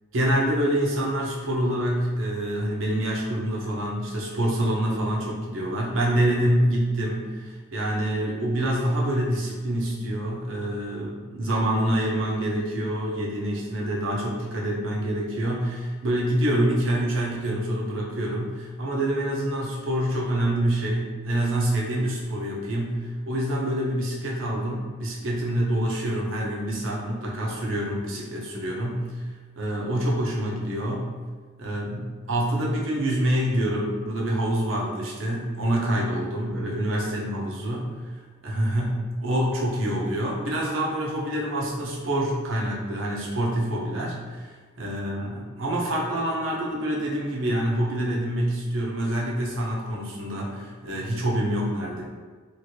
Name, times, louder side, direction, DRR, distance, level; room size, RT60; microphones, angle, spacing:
voice 1, 0.1-29.2 29.6-31.1 31.6-37.9 38.4-44.4 44.8-52.0, right 1 dB, 80° right, -3 dB, 0.7 m, -26 dB
3.1 x 2.5 x 2.8 m, 1.5 s
head